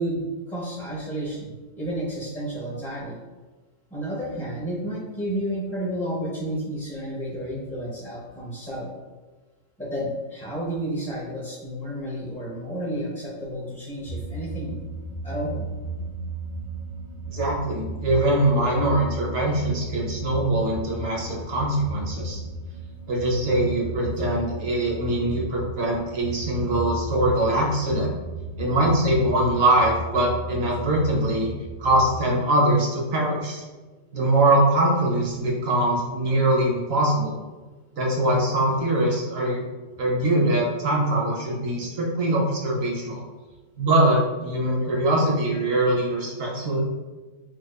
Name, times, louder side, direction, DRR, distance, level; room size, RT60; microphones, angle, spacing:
voice 1, 0.0-3.2 3.9-8.9 9.8-14.7 15.2-15.7, right 1 dB, 10° left, -7 dB, 0.6 m, -31 dB
sound 1, 14.1-32.2, right 2 dB, 55° left, 0.8 m, -35 dB
voice 2, 17.3-22.4 23.1-28.1 28.6-31.5 31.8-33.6 34.1-37.4 38.0-39.6 40.0-43.2 43.8-46.8, right 1 dB, 55° right, -3 dB, 0.9 m, -22 dB
4.4 x 2.4 x 2.4 m, 1.3 s
omnidirectional pair, 1.4 m